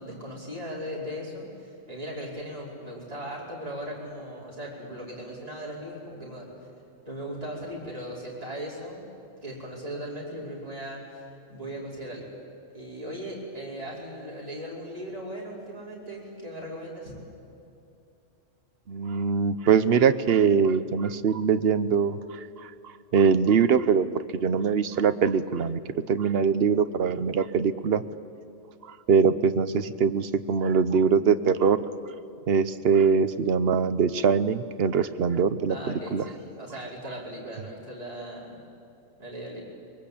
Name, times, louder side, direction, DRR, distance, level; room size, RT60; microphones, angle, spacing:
voice 1, 0.0-6.5 7.0-9.0 9.4-12.3 12.7-17.1 35.7-38.6 39.2-39.6, equal, 30° right, -5 dB, 5.2 m, -38 dB
voice 2, 18.9-22.7 23.1-24.1 24.3-25.8 26.1-28.0 29.1-31.8 32.5-35.8 36.1-36.2, right 6 dB, 55° right, 12 dB, 1.0 m, -22 dB
23.5 x 22.0 x 8.5 m, 2.6 s
omnidirectional pair, 1.4 m